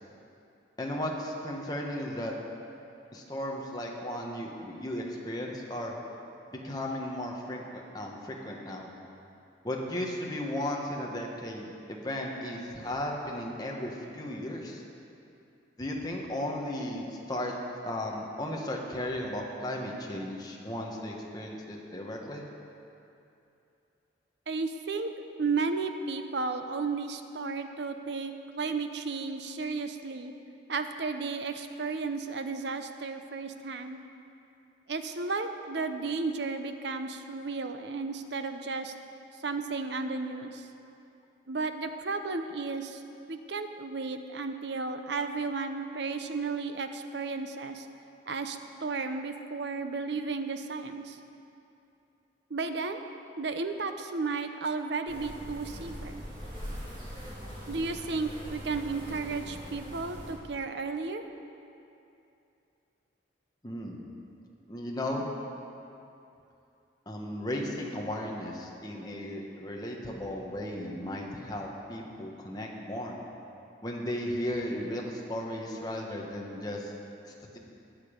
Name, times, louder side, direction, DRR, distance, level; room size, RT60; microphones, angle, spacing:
voice 1, 0.8-2.3 3.1-6.0 6.5-8.9 9.6-14.8 15.8-17.5 17.8-22.4 63.6-64.0 64.7-65.3 67.1-73.2 73.8-76.9 77.2-77.6, left 1 dB, 20° left, -1 dB, 1.3 m, -35 dB
voice 2, 24.5-25.1 25.4-30.3 30.7-34.0 34.9-38.9 39.4-40.7 41.5-43.0 43.3-47.9 48.3-51.2 52.5-53.0 53.4-56.2 57.7-61.2, right 4 dB, 65° right, 7 dB, 0.7 m, -33 dB
sound 1, 55.1-60.3, equal, 45° right, 3.6 m, -42 dB
20.0 x 6.8 x 5.2 m, 2.7 s
head